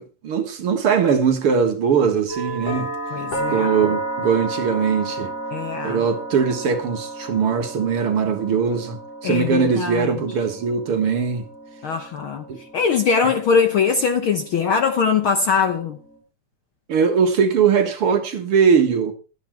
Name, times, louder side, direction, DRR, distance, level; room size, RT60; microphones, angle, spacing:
voice 1, 0.0-2.9 3.5-5.3 5.8-11.4 12.5-12.6 16.9-19.1, right 6 dB, 50° right, 2.1 m, -20 dB
sound 1, 2.3-16.2, right 2 dB, 50° left, 6.5 m, -33 dB
voice 2, 3.1-3.7 5.5-6.0 9.2-10.1 11.8-12.5 12.7-16.0, left 6 dB, 70° left, 1.2 m, -21 dB
13.0 x 9.9 x 4.5 m
omnidirectional pair, 3.6 m